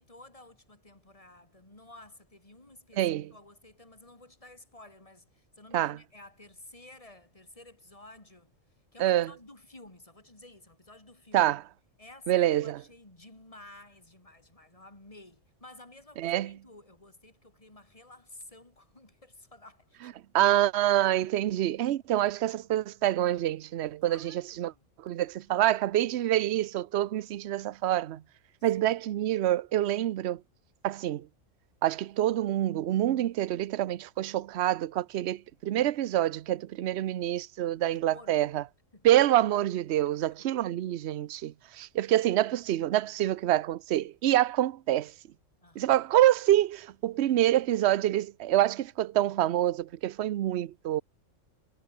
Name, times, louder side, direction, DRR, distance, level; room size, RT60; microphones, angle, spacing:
voice 1, 0.0-8.5 8.9-11.5 12.0-20.2 24.0-24.8 25.4-25.6 28.6-28.9 37.9-38.5 38.9-39.2 45.6-45.9, left 2 dB, 25° left, 3.4 m, -53 dB
voice 2, 3.0-3.3 5.7-6.0 9.0-9.3 11.3-11.6 12.3-12.8 16.2-16.5 20.3-24.7 25.0-28.2 28.6-30.4 30.8-31.3 31.8-38.6 39.0-45.1 45.8-51.0, right 13 dB, 60° right, 0.9 m, -26 dB
omnidirectional pair, 1.3 m